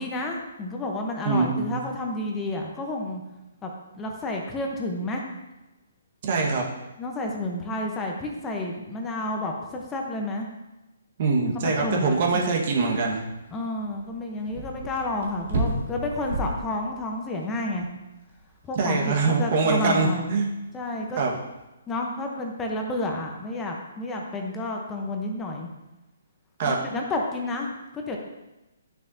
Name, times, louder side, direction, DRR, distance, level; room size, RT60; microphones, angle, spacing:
voice 1, 0.0-3.2 3.6-5.2 7.0-10.5 11.5-12.6 13.5-17.9 18.7-20.4 20.7-21.2 21.9-25.7 26.6-28.2, left 2 dB, 15° left, 1 dB, 0.9 m, -30 dB
voice 2, 1.2-1.8 6.2-6.6 11.2-13.2 18.8-20.5 21.2-21.4 26.6-26.8, right 4 dB, 50° right, 0 dB, 1.5 m, -23 dB
sound 1, 11.7-21.6, right 1 dB, 65° right, 1.9 m, -35 dB
9.5 x 6.5 x 2.8 m, 1.0 s
hypercardioid pair, 145°, 0 cm